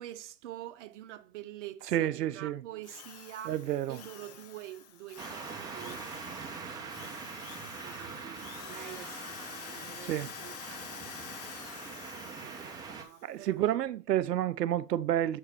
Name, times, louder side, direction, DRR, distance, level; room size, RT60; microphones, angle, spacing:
voice 1, 0.0-3.6 3.9-6.0 6.5-11.3 12.3-13.8, right 13 dB, 50° right, 0.8 m, -47 dB
voice 2, 1.9-2.6 3.5-4.0 10.0-10.3 13.2-15.4, right 12 dB, 80° right, 0.6 m, -30 dB
Drill, 2.8-13.2, left 9 dB, 30° left, 0.5 m, -48 dB
sound 1, 5.2-13.0, right 5 dB, 10° right, 0.7 m, -43 dB
7.1 x 4.8 x 4.3 m
hypercardioid pair, 130°, 48 cm